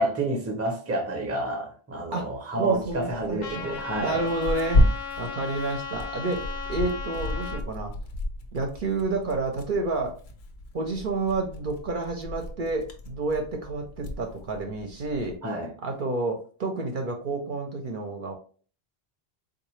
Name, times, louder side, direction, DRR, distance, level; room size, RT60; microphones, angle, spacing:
voice 1, 0.0-4.2 15.4-15.7, right 1 dB, 15° right, 0.6 m, -29 dB
voice 2, 2.1-7.9 8.5-10.2 10.7-15.4 15.8-18.3, right 3 dB, 60° right, 0.7 m, -30 dB
Tearing, 2.7-15.4, left 1 dB, 90° left, 0.9 m, -31 dB
Trumpet, 3.4-7.6, left 6 dB, 55° left, 0.6 m, -36 dB
3.8 x 2.4 x 3.1 m
omnidirectional pair, 1.0 m